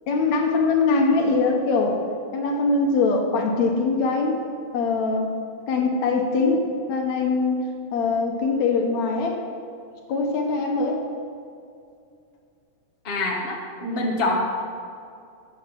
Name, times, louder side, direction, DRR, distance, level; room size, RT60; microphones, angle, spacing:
voice 1, 0.1-2.0 2.3-4.4 4.7-5.3 5.7-7.6 7.9-9.4 10.1-11.0, left 3 dB, 65° left, 2 dB, 2.1 m, -22 dB
voice 2, 13.0-14.4, left 2 dB, 85° left, -1 dB, 0.5 m, -25 dB
13.0 x 8.7 x 5.9 m, 2.4 s
omnidirectional pair, 4.0 m